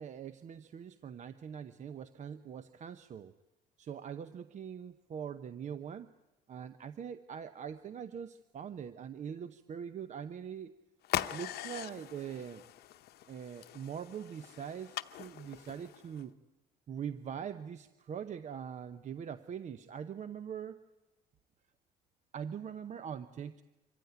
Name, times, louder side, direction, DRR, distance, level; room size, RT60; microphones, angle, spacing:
voice 1, 0.0-3.3 3.8-6.1 6.5-10.7 11.3-12.6 13.3-16.3 16.9-20.8 22.3-23.6, right 8 dB, 45° right, 11 dB, 0.8 m, -42 dB
sound 1, 11.0-16.2, left 13 dB, 70° left, 0.9 m, -41 dB
25.0 x 15.5 x 9.3 m, 1.1 s
cardioid pair, 110°, 17 cm